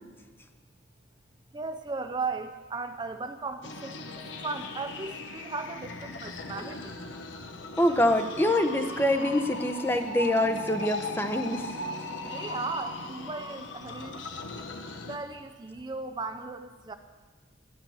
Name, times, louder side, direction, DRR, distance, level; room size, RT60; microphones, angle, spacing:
voice 1, 1.5-7.0 12.2-14.2 15.0-16.9, right 3 dB, 25° right, 7 dB, 0.5 m, -36 dB
sound 1, 3.6-15.2, left 2 dB, 85° left, 1.2 m, -38 dB
voice 2, 7.8-11.7, left 1 dB, 10° left, 7 dB, 0.8 m, -25 dB
13.0 x 11.0 x 6.3 m, 1.4 s
head